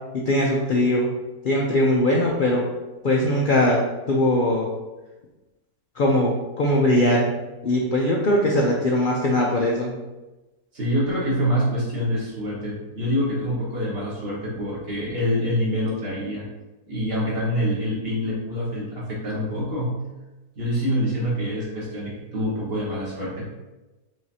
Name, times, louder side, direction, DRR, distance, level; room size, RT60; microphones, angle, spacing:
voice 1, 0.3-1.1 1.4-2.6 3.0-3.8 4.1-4.7 6.0-7.3 7.6-9.9, left 1 dB, 80° left, -2 dB, 0.4 m, -20 dB
voice 2, 10.7-16.4 16.8-20.0 20.6-23.5, equal, 40° right, -6 dB, 1.5 m, -26 dB
4.8 x 3.7 x 2.8 m, 1.1 s
omnidirectional pair, 1.6 m